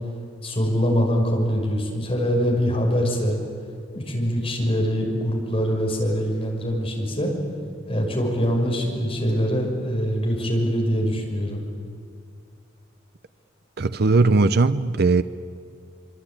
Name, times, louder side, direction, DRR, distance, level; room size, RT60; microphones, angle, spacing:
voice 1, 0.4-3.4 3.9-7.3 7.9-11.6, equal, 30° left, 0 dB, 6.0 m, -23 dB
voice 2, 13.8-15.2, right 3 dB, 55° right, 12 dB, 0.7 m, -18 dB
26.0 x 25.0 x 8.8 m, 2.3 s
head